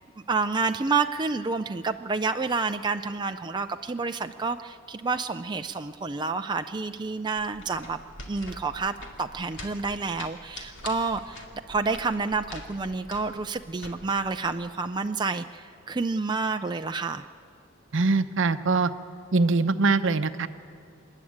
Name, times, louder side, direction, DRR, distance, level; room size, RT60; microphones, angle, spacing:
voice 1, 0.3-8.0 8.3-17.2, right 4 dB, 20° right, 7 dB, 0.4 m, -29 dB
sound 1, 7.4-14.7, left 2 dB, 65° left, 2.4 m, -45 dB
voice 2, 17.9-18.9 19.3-20.5, right 3 dB, 65° right, 10 dB, 0.8 m, -22 dB
28.0 x 11.0 x 8.7 m, 2.5 s
head